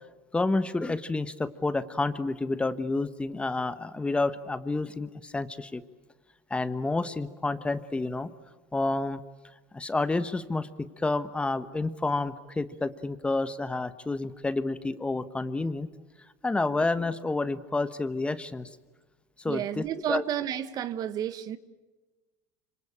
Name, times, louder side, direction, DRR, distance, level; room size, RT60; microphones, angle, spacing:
voice 1, 0.3-5.8 6.5-8.3 8.7-9.2 9.7-15.9 16.4-18.7 19.4-20.2, left 3 dB, 10° left, 1.2 m, -29 dB
voice 2, 19.4-21.6, right 10 dB, 45° right, 1.3 m, -31 dB
26.5 x 25.0 x 8.8 m
supercardioid pair, 100°, 9 cm